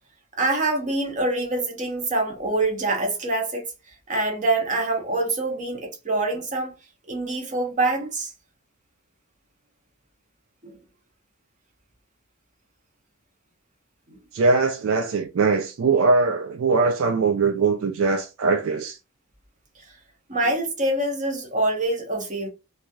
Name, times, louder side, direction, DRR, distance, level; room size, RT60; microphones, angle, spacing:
voice 1, 0.4-3.7 4.1-6.7 7.1-8.3 10.6-10.7 14.1-14.2 20.3-22.5, right 2 dB, 35° right, 1.0 m, -25 dB
voice 2, 14.3-19.0, right 4 dB, 65° right, 0.4 m, -21 dB
3.2 x 2.6 x 2.3 m
head